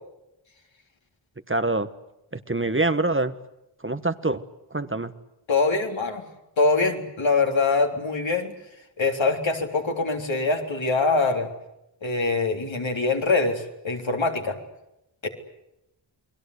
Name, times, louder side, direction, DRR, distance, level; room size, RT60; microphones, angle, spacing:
voice 1, 1.5-1.9 2.3-3.3 3.8-4.4 4.7-5.1, right 2 dB, 25° right, 10 dB, 1.4 m, -25 dB
voice 2, 5.5-6.2 6.6-8.5 9.0-11.5 12.0-14.6 15.2-15.3, left 3 dB, 70° left, 3 dB, 3.8 m, -23 dB
29.5 x 21.5 x 8.2 m, 0.88 s
wide cardioid pair, 55°, 47 cm